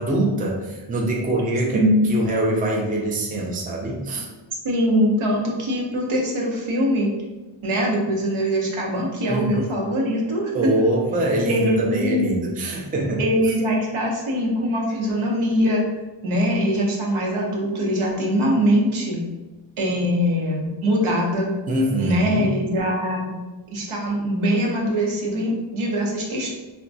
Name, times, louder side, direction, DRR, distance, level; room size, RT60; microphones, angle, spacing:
voice 1, 0.0-1.8 2.1-4.3 9.3-9.7 10.5-13.2 21.7-22.5, right 1 dB, 20° right, -1 dB, 0.4 m, -23 dB
voice 2, 1.7-2.1 4.6-7.1 7.6-10.7 11.5-12.4 13.2-15.8 16.2-19.2 19.8-21.5 22.0-23.3 23.7-26.5, equal, 85° right, -1 dB, 0.9 m, -22 dB
4.2 x 2.2 x 2.6 m, 1.2 s
wide cardioid pair, 170°, 48 cm